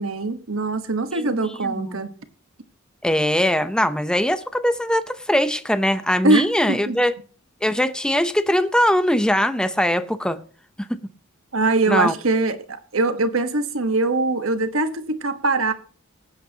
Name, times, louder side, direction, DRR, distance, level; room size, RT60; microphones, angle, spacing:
voice 1, 0.0-2.1 6.2-7.0 11.5-15.7, right 3 dB, 70° right, 1.3 m, -22 dB
voice 2, 1.6-2.0 3.0-7.1 7.6-10.4 11.9-12.1, equal, 5° left, 0.7 m, -21 dB
19.0 x 8.9 x 2.9 m
head